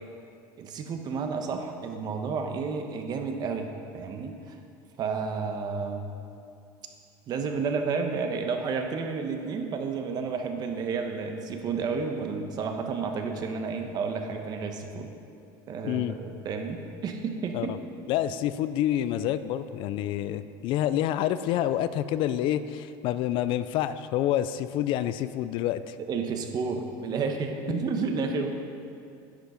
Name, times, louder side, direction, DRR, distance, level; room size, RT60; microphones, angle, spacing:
voice 1, 0.6-4.6 5.0-6.1 7.3-15.1 15.7-17.7 26.1-28.5, right 5 dB, 40° right, 5 dB, 1.1 m, -31 dB
voice 2, 15.8-16.1 17.5-17.8 18.1-26.0 27.7-27.8 28.3-28.4, left 12 dB, 55° left, 13 dB, 0.4 m, -28 dB
10.0 x 8.1 x 5.1 m, 2.4 s
supercardioid pair, 125°, 10 cm